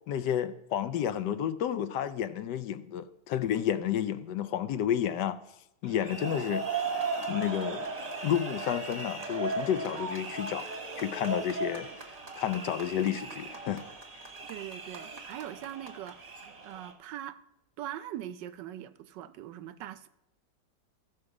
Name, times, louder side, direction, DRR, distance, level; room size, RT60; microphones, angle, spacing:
voice 1, 0.1-5.4 5.8-6.7 7.3-7.8 8.2-10.7 11.0-11.9 12.4-13.8 14.1-14.2, left 10 dB, 75° left, 1.1 m, -31 dB
sound 1, 5.8-16.9, right 3 dB, 25° right, 1.0 m, -37 dB
voice 2, 14.5-16.4 16.6-17.4 17.8-20.1, right 12 dB, 75° right, 1.2 m, -41 dB
15.5 x 6.5 x 4.8 m
omnidirectional pair, 2.0 m